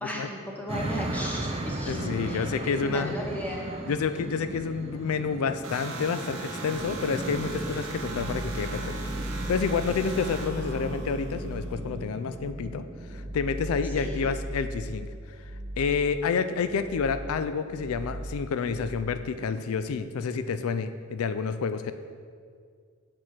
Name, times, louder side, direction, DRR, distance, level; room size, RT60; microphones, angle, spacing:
voice 1, 0.0-3.6 13.8-14.3, left 1 dB, 5° left, -2 dB, 1.0 m, -36 dB
sound 1, 0.7-14.9, right 1 dB, 30° right, 0.5 m, -36 dB
voice 2, 1.9-3.2 3.9-9.0 9.3-12.8 13.1-15.1 15.8-21.9, left 5 dB, 90° left, 10 dB, 0.4 m, -29 dB
sound 2, 5.6-11.8, right 4 dB, 65° right, 0.8 m, -41 dB
sound 3, 6.7-19.5, right 1 dB, 45° right, 1.2 m, -39 dB
6.1 x 4.2 x 6.4 m, 2.1 s
head